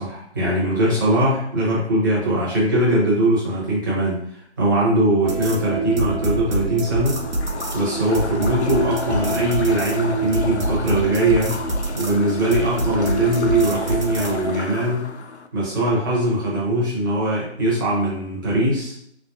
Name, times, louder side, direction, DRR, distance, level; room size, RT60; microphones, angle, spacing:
voice 1, 0.0-4.2 4.6-7.2 7.7-11.6 11.9-15.0 15.5-18.9, right 1 dB, 15° right, -7 dB, 1.0 m, -21 dB
sound 1, 5.2-14.5, right 1 dB, 75° right, 0.9 m, -25 dB
sound 2, 6.8-15.5, left 5 dB, 70° left, 0.5 m, -33 dB
4.1 x 3.4 x 2.5 m, 0.69 s
figure-of-eight pair, 150°, 35 cm